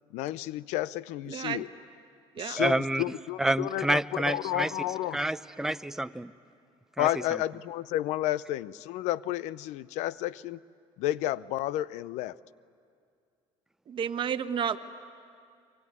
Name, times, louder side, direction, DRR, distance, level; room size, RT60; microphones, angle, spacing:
voice 1, 0.1-1.7 2.4-5.2 7.0-10.6 11.0-12.4, left 14 dB, 80° left, 19 dB, 0.6 m, -31 dB
voice 2, 1.3-1.6 2.3-2.6 13.9-14.8, right 8 dB, 45° right, 10 dB, 1.2 m, -31 dB
voice 3, 2.6-3.0 3.4-4.7 5.1-6.3 7.0-7.1, right 1 dB, 5° right, 11 dB, 0.6 m, -28 dB
24.5 x 23.5 x 9.6 m, 2.3 s
cardioid pair, 110°, 12 cm